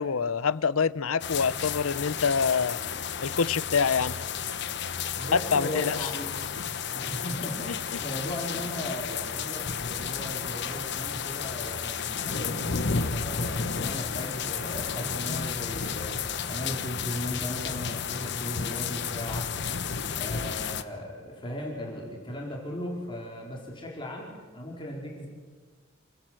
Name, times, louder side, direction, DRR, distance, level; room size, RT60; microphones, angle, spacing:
voice 1, 0.0-2.8 3.2-4.1 5.3-6.1, left 5 dB, 90° left, 0.7 m, -26 dB
sound 1, 1.2-20.8, left 6 dB, 55° left, 1.0 m, -32 dB
voice 2, 5.1-6.3 6.9-12.6 12.9-16.2 16.5-19.4 20.2-25.3, equal, 25° left, 4.6 m, -37 dB
28.0 x 18.5 x 7.7 m
head